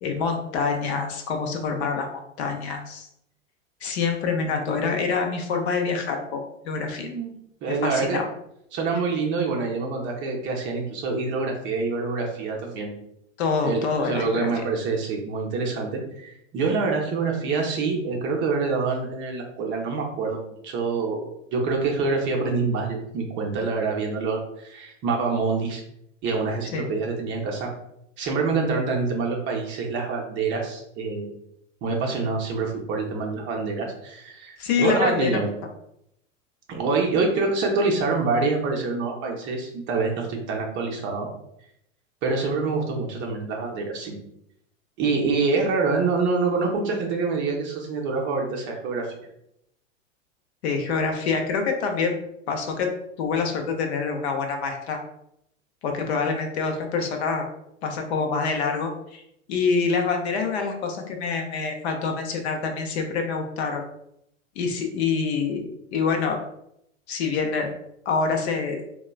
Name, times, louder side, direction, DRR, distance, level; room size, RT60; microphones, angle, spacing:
voice 1, 0.0-2.1 2.4-3.1 3.8-7.1 7.7-8.2 13.4-14.5 26.7-26.9 34.6-35.4 50.6-52.2 52.5-52.9 53.2-55.0 55.8-57.5 57.8-59.2 59.5-63.8 64.6-66.4 67.1-67.7 68.1-68.8, left 5 dB, 55° left, 4 dB, 0.6 m, -26 dB
voice 2, 7.0-7.3 7.6-8.2 8.7-12.9 13.6-21.2 21.5-25.8 26.2-27.7 28.2-31.3 31.8-35.5 36.7-41.3 42.2-44.2 45.0-49.2, right 4 dB, 30° right, 0 dB, 0.5 m, -26 dB
2.9 x 2.2 x 2.2 m, 0.76 s
figure-of-eight pair, 95°, 39 cm